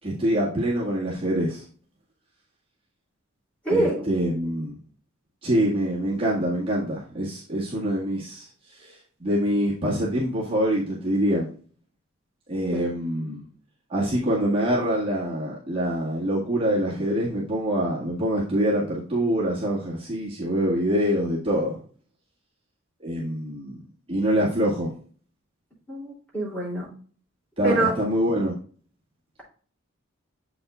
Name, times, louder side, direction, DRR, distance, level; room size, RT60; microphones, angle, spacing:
voice 1, 0.0-1.6 3.7-4.7 5.4-11.5 12.5-13.4 13.9-21.8 23.0-23.8 24.1-24.9 27.6-28.5, equal, 25° right, -7 dB, 2.0 m, -25 dB
voice 2, 3.6-4.0 12.7-12.9 13.2-13.3 25.9-26.9 27.6-27.9, right 2 dB, 5° left, -5 dB, 3.3 m, -25 dB
7.9 x 6.0 x 2.5 m, 0.43 s
head